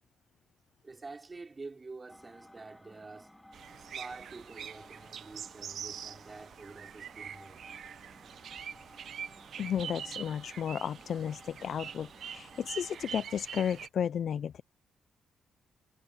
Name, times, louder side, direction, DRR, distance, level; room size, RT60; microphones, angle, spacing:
voice 1, 0.8-3.3 3.8-7.6, right 3 dB, 25° right, 5.4 m, -48 dB
sound 1, 2.1-13.1, left 1 dB, 5° left, 3.5 m, -56 dB
sound 2, 3.5-13.9, right 8 dB, 65° right, 1.0 m, -44 dB
voice 2, 9.6-14.6, left 8 dB, 60° left, 0.5 m, -33 dB
cardioid pair, 100°, 0 cm